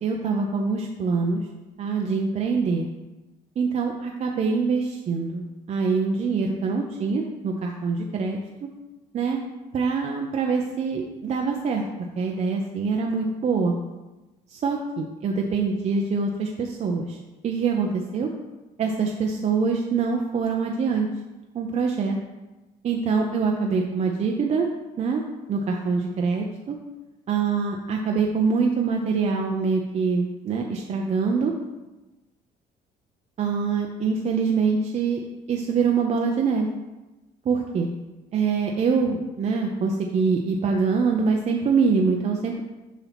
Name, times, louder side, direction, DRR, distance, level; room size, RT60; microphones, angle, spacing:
voice 1, 0.0-1.4 1.8-2.9 3.6-8.4 9.1-9.4 9.7-11.8 12.2-13.7 14.5-17.2 17.4-18.3 18.8-21.1 21.5-22.2 22.8-24.7 25.0-25.2 25.5-26.8 27.3-31.5 33.4-35.2 35.5-36.7 37.5-37.9 38.3-42.6, right 5 dB, 40° right, 1 dB, 0.6 m, -24 dB
7.0 x 2.8 x 5.9 m, 1.1 s
cardioid pair, 110°, 17 cm